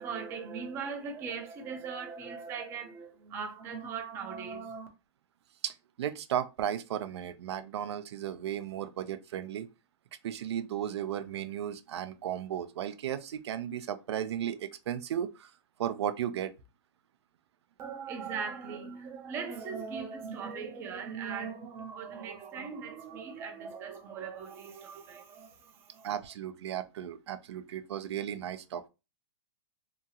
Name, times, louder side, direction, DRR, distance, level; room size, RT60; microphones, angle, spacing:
voice 1, 0.0-4.9 17.8-26.1, right 6 dB, 15° right, 0.5 m, -39 dB
voice 2, 5.6-9.7 10.2-15.5 15.8-16.5 26.0-28.9, right 10 dB, 70° right, 0.4 m, -35 dB
2.8 x 2.3 x 2.8 m
hypercardioid pair, 165°, 15 cm